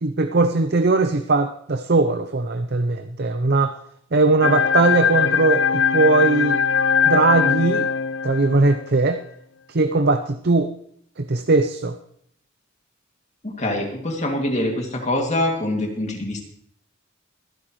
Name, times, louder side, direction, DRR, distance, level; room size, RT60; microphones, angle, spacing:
voice 1, 0.0-3.7 4.1-6.6 7.0-7.9 8.2-9.2 9.7-10.7 11.2-12.0, right 3 dB, 50° right, 8 dB, 0.7 m, -19 dB
sound 1, 4.4-8.9, left 6 dB, 60° left, 0.4 m, -21 dB
voice 2, 13.4-16.4, left 1 dB, 35° left, 1 dB, 2.5 m, -24 dB
24.5 x 10.0 x 3.2 m, 0.68 s
head